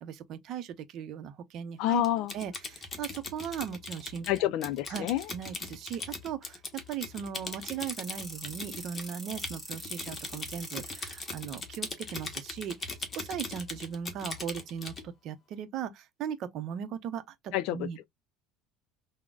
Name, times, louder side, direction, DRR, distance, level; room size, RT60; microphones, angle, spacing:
voice 1, 0.0-4.3 4.9-12.9 13.1-18.0, right 8 dB, 50° right, 0.6 m, -38 dB
voice 2, 1.8-2.3 4.3-5.3 17.5-18.0, left 14 dB, 65° left, 0.3 m, -28 dB
Typing, 2.0-15.0, left 3 dB, 20° left, 0.9 m, -40 dB
sound 1, 7.7-11.9, equal, 5° left, 1.6 m, -44 dB
3.7 x 2.1 x 2.3 m
cardioid pair, 135°, 0 cm